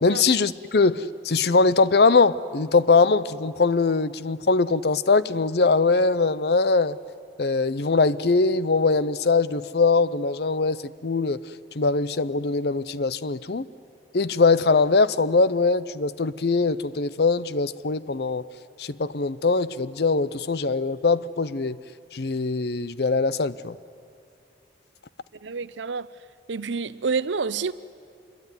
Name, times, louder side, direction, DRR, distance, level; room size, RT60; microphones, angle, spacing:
voice 1, 0.0-7.0 7.4-11.4 11.8-13.7 14.1-18.4 18.8-21.8 22.1-23.8, left 4 dB, 60° left, 0.7 m, -22 dB
voice 2, 25.4-26.1 26.5-27.7, right 5 dB, 80° right, 0.7 m, -28 dB
26.5 x 22.0 x 9.8 m
head